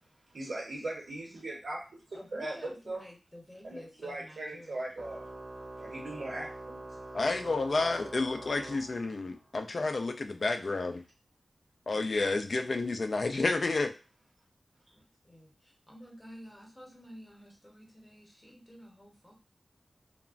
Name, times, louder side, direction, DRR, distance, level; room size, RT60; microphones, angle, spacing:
voice 1, 0.3-1.8 2.1-3.0 3.6-5.3 5.8-7.0, right 2 dB, 80° right, -3 dB, 0.7 m, -39 dB
voice 2, 2.1-4.9 14.9-19.3, equal, 15° left, -1 dB, 0.9 m, -51 dB
Organ, 5.0-9.5, right 2 dB, 50° right, 0.4 m, -45 dB
voice 3, 7.1-11.0 11.9-13.9, left 3 dB, 60° left, 6 dB, 0.3 m, -30 dB
3.0 x 2.1 x 2.4 m, 0.33 s
wide cardioid pair, 100°, 0 cm